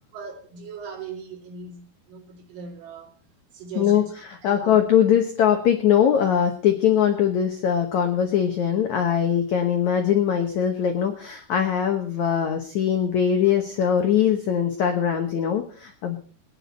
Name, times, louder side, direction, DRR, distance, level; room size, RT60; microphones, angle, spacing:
voice 1, 0.1-3.1 3.5-4.1 4.4-4.8, right 5 dB, 55° right, 1 dB, 4.0 m, -39 dB
voice 2, 4.4-16.2, left 9 dB, 80° left, 5 dB, 1.6 m, -21 dB
19.5 x 10.0 x 4.1 m, 0.42 s
omnidirectional pair, 5.0 m